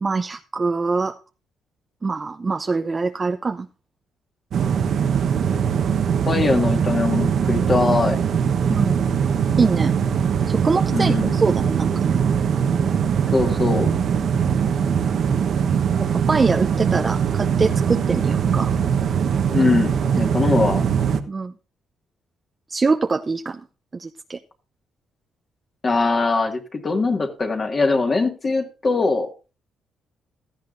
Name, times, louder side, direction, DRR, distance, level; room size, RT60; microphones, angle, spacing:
voice 1, 0.0-1.2 2.0-3.7 8.7-9.0 9.6-9.9 10.5-12.2 16.1-18.7 21.3-21.5 22.7-23.6 23.9-24.4, right 4 dB, 30° right, 0.6 m, -23 dB
sound 1, 4.5-21.2, right 7 dB, 60° right, 1.0 m, -21 dB
voice 2, 6.3-8.2 10.9-11.4 13.3-13.9 19.5-20.8 25.8-29.3, left 3 dB, 35° left, 1.9 m, -21 dB
16.5 x 13.0 x 2.6 m
cardioid pair, 90°, 0 cm